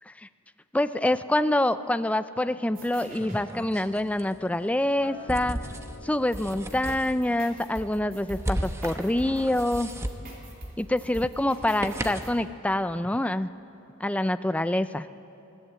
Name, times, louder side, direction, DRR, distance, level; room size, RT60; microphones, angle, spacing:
voice 1, 0.7-5.6 6.0-9.9 10.8-13.5 14.0-15.1, left 1 dB, 5° left, 12 dB, 0.4 m, -26 dB
sound 1, 2.7-3.4 6.3-12.3, right 1 dB, 40° right, 3.3 m, -44 dB
sound 2, 2.8-12.4, right 1 dB, 15° right, 1.0 m, -37 dB
Acoustic guitar, 5.0-9.4 9.8-10.2, left 3 dB, 60° left, 3.2 m, -49 dB
21.0 x 16.0 x 8.3 m, 2.9 s
head